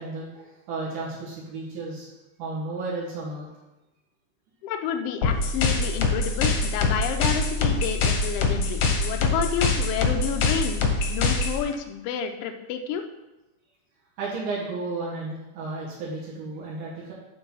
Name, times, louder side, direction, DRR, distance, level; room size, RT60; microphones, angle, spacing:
voice 1, 0.0-2.1 2.4-3.5 14.2-17.1, right 3 dB, 90° right, -6 dB, 3.1 m, -33 dB
voice 2, 4.6-13.0, left 7 dB, 80° left, 6 dB, 1.4 m, -30 dB
sound 1, 5.2-11.6, left 3 dB, 65° left, 1.3 m, -24 dB
8.4 x 3.8 x 5.6 m, 1.0 s
omnidirectional pair, 3.4 m